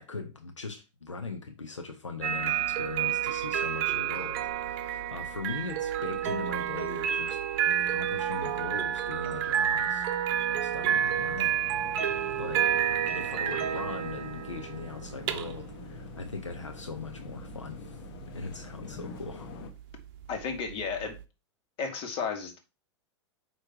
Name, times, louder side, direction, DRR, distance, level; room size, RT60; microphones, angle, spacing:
voice 1, 0.0-7.4 7.8-10.1 10.5-12.7 13.1-18.0 18.3-19.5, left 4 dB, 80° left, 0.9 m, -40 dB
sound 1, 2.2-21.2, right 9 dB, 50° right, 0.8 m, -30 dB
sound 2, 10.9-19.7, left 6 dB, 50° left, 1.1 m, -46 dB
voice 2, 20.3-21.2 21.8-22.6, left 5 dB, 35° left, 2.1 m, -33 dB
8.7 x 3.2 x 4.7 m
figure-of-eight pair, 90°, 15 cm